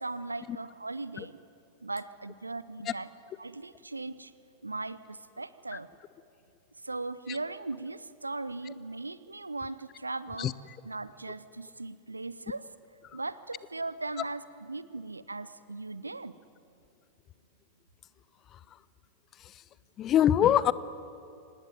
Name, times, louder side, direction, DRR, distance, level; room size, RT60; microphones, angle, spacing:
voice 1, 0.0-1.4 1.8-3.1 3.4-4.3 4.6-5.9 6.8-10.5 10.8-12.6 13.1-16.3, right 3 dB, 80° right, 16 dB, 0.8 m, -38 dB
voice 2, 20.0-20.7, left 10 dB, 30° left, 19 dB, 0.7 m, -24 dB
25.0 x 19.5 x 9.3 m, 2.6 s
figure-of-eight pair, 90°, 0 cm